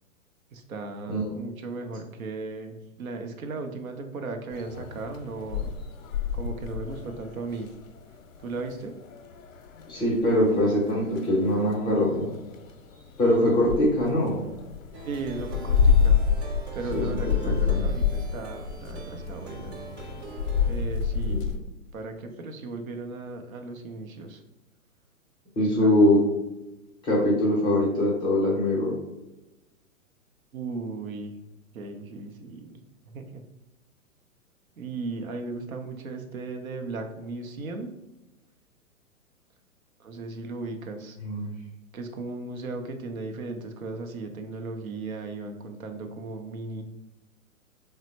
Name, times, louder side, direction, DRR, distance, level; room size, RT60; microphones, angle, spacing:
voice 1, 0.5-5.7 6.3-7.7 8.4-8.9 15.1-19.8 20.7-21.5 21.9-24.4 25.6-25.9 30.5-31.4 31.7-32.8 33.0-33.4 34.8-37.9 40.0-41.2 41.9-46.8, right 3 dB, 70° right, 5 dB, 0.7 m, -36 dB
sound 1, 4.5-21.6, left 6 dB, 65° left, 0.6 m, -29 dB
voice 2, 9.9-12.3 13.2-14.4 16.9-17.2 17.4-17.8 21.3-21.4 25.6-26.2 27.0-28.9 41.2-41.5, left 1 dB, 10° left, -4 dB, 0.5 m, -22 dB
Plucked string instrument, 14.9-20.7, right 4 dB, 35° right, 0.8 m, -41 dB
3.3 x 2.1 x 4.0 m, 1.0 s
figure-of-eight pair, 120°, 43 cm